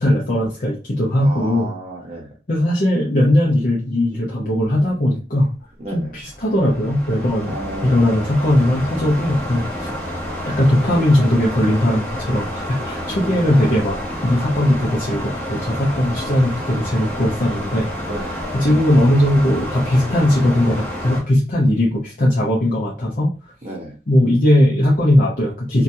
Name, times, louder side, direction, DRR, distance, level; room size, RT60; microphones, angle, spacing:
voice 1, 0.0-1.7 2.5-5.5 5.9-7.5 7.8-9.9 10.4-18.1 18.5-23.3 24.1-25.8, left 1 dB, 45° left, -4 dB, 0.6 m, -18 dB
voice 2, 1.2-2.3 5.8-6.1 7.5-8.3 13.1-13.7 18.0-18.4 23.6-23.9, right 1 dB, 30° right, -1 dB, 0.7 m, -32 dB
sound 1, 6.1-21.2, equal, 10° left, 0.8 m, -29 dB
2.9 x 2.3 x 2.6 m, 0.33 s
head